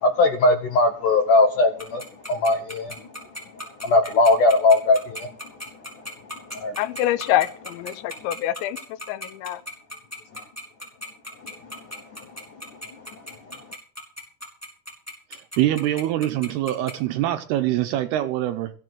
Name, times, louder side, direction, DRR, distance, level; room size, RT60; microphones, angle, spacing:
voice 1, 0.0-2.9 3.8-5.3 6.5-6.8, left 2 dB, 75° left, 1.9 m, -19 dB
Tick-tock, 1.8-16.9, left 1 dB, 5° left, 4.5 m, -36 dB
voice 2, 6.8-8.8 9.1-9.6, left 13 dB, 90° left, 3.2 m, -25 dB
voice 3, 15.3-18.7, right 13 dB, 80° right, 2.4 m, -24 dB
15.5 x 7.7 x 7.7 m
omnidirectional pair, 5.2 m